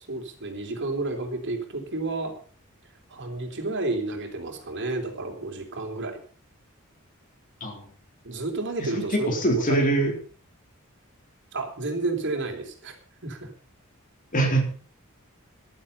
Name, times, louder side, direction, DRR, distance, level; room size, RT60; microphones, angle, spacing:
voice 1, 0.1-2.4 3.1-6.2 8.2-9.8 11.5-13.0 13.2-13.5, right 2 dB, 60° right, 4 dB, 3.6 m, -31 dB
voice 2, 8.9-10.1 14.3-14.7, right 2 dB, 40° left, 3 dB, 4.0 m, -23 dB
14.5 x 12.0 x 5.6 m, 0.39 s
head